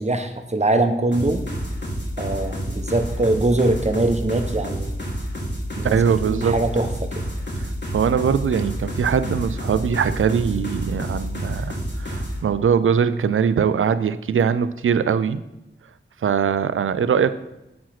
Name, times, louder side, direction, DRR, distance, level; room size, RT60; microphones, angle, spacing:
voice 1, 0.0-1.4 2.2-4.9 5.8-6.0 6.2-7.1, right 2 dB, 35° right, 7 dB, 1.0 m, -22 dB
sound 1, 1.1-12.4, equal, 60° left, 2.3 m, -29 dB
voice 2, 5.8-6.6 7.6-15.4 16.2-17.3, right 7 dB, 80° right, 13 dB, 0.4 m, -21 dB
7.3 x 4.9 x 5.8 m, 0.93 s
cardioid pair, 45°, 21 cm